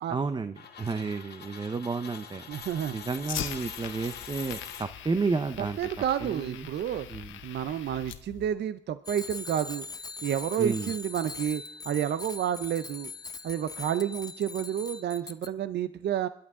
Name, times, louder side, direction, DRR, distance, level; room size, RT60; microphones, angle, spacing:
voice 1, 0.1-2.4 2.9-5.8 6.2-6.7 7.1-7.4 10.6-10.9, right 4 dB, 20° right, 10 dB, 0.7 m, -31 dB
sound 1, 0.6-5.4, left 7 dB, 55° left, 2.0 m, -44 dB
Fire, 2.5-8.5, left 11 dB, 80° left, 1.1 m, -42 dB
voice 2, 2.5-3.0 5.6-7.1 7.4-9.9 10.2-13.1 13.4-16.3, right 10 dB, 60° right, 13 dB, 0.6 m, -30 dB
Bicycle bell, 9.0-15.5, left 4 dB, 20° left, 0.7 m, -41 dB
21.5 x 11.5 x 3.7 m, 0.66 s
cardioid pair, 90°, 20 cm